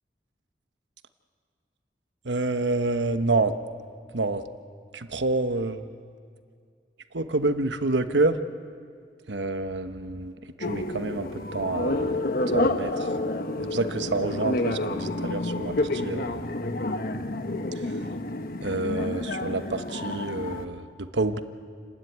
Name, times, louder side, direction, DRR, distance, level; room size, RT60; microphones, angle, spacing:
voice 1, 2.2-3.5 4.1-4.4 4.9-5.8 7.1-8.4 9.3-12.2 12.5-13.1 13.6-16.5 18.6-21.4, right 2 dB, 85° right, 9 dB, 1.1 m, -28 dB
sound 1, 10.6-20.7, left 2 dB, 55° left, 1.1 m, -29 dB
29.0 x 12.5 x 9.5 m, 2.3 s
head